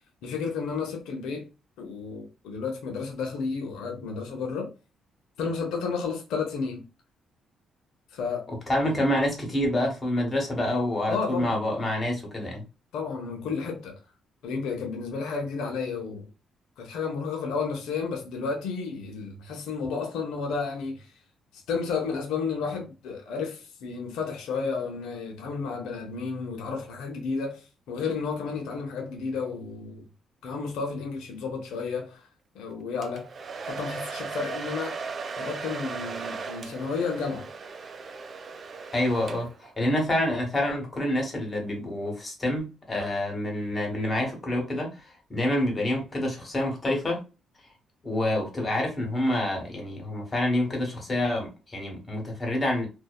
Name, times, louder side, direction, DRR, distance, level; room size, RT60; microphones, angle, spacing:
voice 1, 0.2-1.5 1.8-4.7 5.4-6.8 8.1-8.5 11.1-11.7 12.9-14.0 14.4-16.3 16.8-21.1 21.7-30.0 30.4-32.3 32.5-33.3 33.6-35.0 35.4-37.5, left 5 dB, 85° left, 0.7 m, -32 dB
voice 2, 8.5-12.6 38.9-47.2 48.0-52.9, left 1 dB, 25° left, 1.2 m, -27 dB
Domestic sounds home sounds, 33.0-39.7, right 4 dB, 45° right, 0.4 m, -37 dB
2.6 x 2.1 x 2.2 m
cardioid pair, 90°, 0 cm